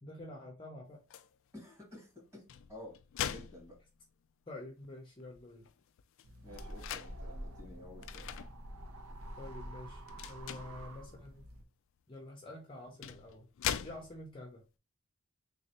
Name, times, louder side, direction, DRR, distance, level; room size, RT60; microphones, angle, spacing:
voice 1, 0.0-1.0 4.5-5.7 9.4-11.5 12.1-13.5 13.8-14.6, left 1 dB, 20° left, 0 dB, 0.6 m, -48 dB
sound 1, 1.1-1.3 2.3-4.3 4.8-4.9 5.2-7.1 8.0-8.5 9.0-9.2 10.1-10.8 12.1-12.2 12.8-14.4, left 9 dB, 60° left, 0.3 m, -41 dB
voice 2, 1.5-3.0 3.2-3.8 6.4-8.3, left 2 dB, 15° right, -2 dB, 1.7 m, -52 dB
sound 2, 6.2-11.6, right 1 dB, 70° right, 0.6 m, -47 dB
3.4 x 3.1 x 2.8 m, 0.28 s
head